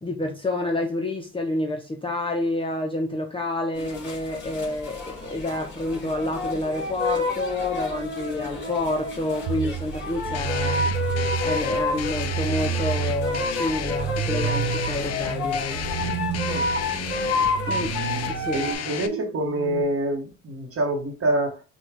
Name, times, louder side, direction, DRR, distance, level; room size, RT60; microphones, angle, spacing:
voice 1, 0.0-10.9 11.4-15.8 17.7-17.9 18.3-18.6, left 2 dB, 15° left, 0.7 m, -28 dB
sound 1, 3.7-18.7, left 3 dB, 35° left, 2.1 m, -30 dB
sound 2, 9.5-19.8, right 11 dB, 70° right, 0.5 m, -31 dB
sound 3, 10.3-19.1, left 10 dB, 55° left, 0.5 m, -33 dB
voice 2, 18.5-21.6, right 1 dB, 50° right, 1.1 m, -26 dB
5.9 x 2.4 x 3.3 m
cardioid pair, 90°, 30 cm